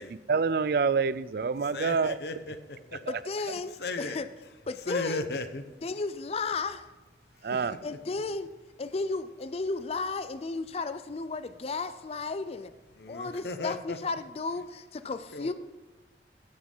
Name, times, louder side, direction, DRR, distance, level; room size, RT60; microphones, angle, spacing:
voice 1, 0.3-2.1 3.1-3.2 7.4-7.8, right 5 dB, 55° right, 17 dB, 0.4 m, -27 dB
voice 2, 1.7-3.1 3.4-4.2 4.9-5.6 7.5-7.8 12.9-14.0 15.3-15.5, left 3 dB, 65° left, 9 dB, 0.9 m, -36 dB
voice 3, 3.1-4.3 4.7-5.3 5.8-6.9 7.8-8.5 8.8-12.7 13.1-15.5, left 3 dB, 35° left, 12 dB, 0.4 m, -33 dB
15.5 x 6.3 x 5.5 m, 1.1 s
head